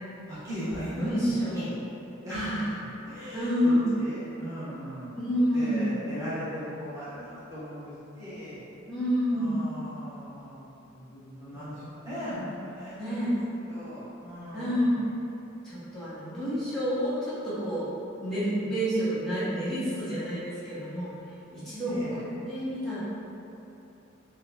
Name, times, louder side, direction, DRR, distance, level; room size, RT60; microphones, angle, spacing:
voice 1, 0.3-1.8 2.1-5.2 5.5-8.6 9.3-13.2 13.7-15.0 21.9-22.2, equal, 15° right, -13 dB, 1.0 m, -39 dB
voice 2, 1.0-1.7 2.3-2.8 3.3-3.9 5.2-6.0 8.9-9.7 11.5-11.8 12.4-12.5 13.0-13.3 14.5-15.0 15.6-17.9 18.2-21.1 21.5-23.0, equal, ahead, -12 dB, 1.2 m, -29 dB
3.8 x 2.3 x 3.4 m, 2.8 s
head